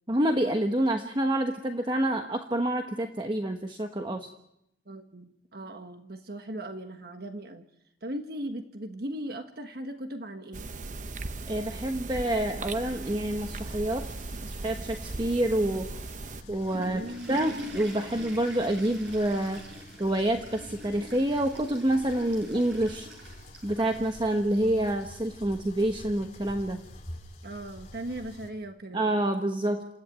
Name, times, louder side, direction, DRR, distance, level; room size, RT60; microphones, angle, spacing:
voice 1, 0.1-4.3 11.5-14.1 14.4-15.9 16.5-17.0 17.3-19.6 20.0-23.3 23.6-26.8 28.9-29.9, right 1 dB, 25° right, 5 dB, 1.2 m, -27 dB
voice 2, 4.9-7.7 8.0-10.7 16.7-17.3 27.4-29.2, right 1 dB, 60° right, 6 dB, 1.4 m, -38 dB
sound 1, 10.5-16.4, right 3 dB, 45° right, 0.8 m, -38 dB
sound 2, 13.3-28.5, left 1 dB, 40° left, 3.2 m, -48 dB
Water / Toilet flush, 16.3-24.1, equal, 90° right, 7.4 m, -44 dB
27.5 x 15.0 x 9.2 m, 0.81 s
head